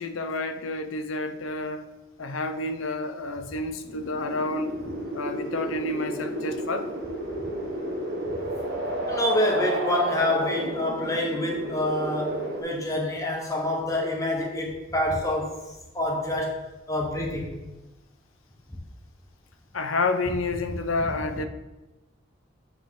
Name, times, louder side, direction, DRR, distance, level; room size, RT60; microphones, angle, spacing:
voice 1, 0.0-1.8 2.2-4.8 5.1-6.9 19.7-21.5, left 2 dB, 80° left, 8 dB, 0.7 m, -29 dB
sound 1, 3.8-12.6, right 1 dB, 55° right, 1.3 m, -32 dB
voice 2, 9.1-15.6 15.9-16.6 16.9-17.6, left 1 dB, 15° left, -1 dB, 1.2 m, -27 dB
8.7 x 4.8 x 3.7 m, 1.1 s
head